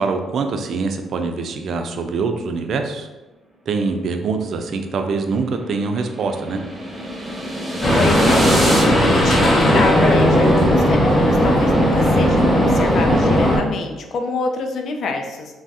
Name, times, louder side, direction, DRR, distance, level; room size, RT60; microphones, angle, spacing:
voice 1, 0.0-3.1 3.7-6.6, right 4 dB, 65° right, 5 dB, 0.3 m, -24 dB
sound 1, 4.6-8.8, right 1 dB, 30° right, 0.8 m, -27 dB
sound 2, 7.8-13.6, equal, 35° left, 0.8 m, -16 dB
voice 2, 7.9-15.6, left 3 dB, 65° left, 4 dB, 0.4 m, -26 dB
3.3 x 2.0 x 2.6 m, 1.1 s
supercardioid pair, 70°, 0 cm